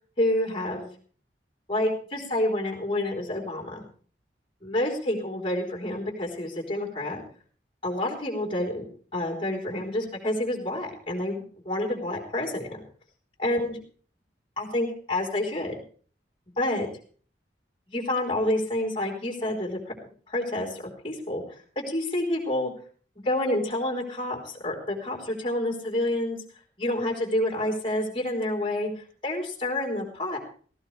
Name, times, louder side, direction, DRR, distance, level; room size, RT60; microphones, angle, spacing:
voice 1, 0.2-0.9 1.7-3.8 4.6-7.2 7.8-8.9 9.1-12.8 13.4-13.8 14.6-15.8 16.6-16.9 17.9-19.9 20.3-22.7 23.2-26.4 26.8-30.4, left 1 dB, 30° left, -1 dB, 4.2 m, -28 dB
18.0 x 16.0 x 3.5 m, 0.44 s
head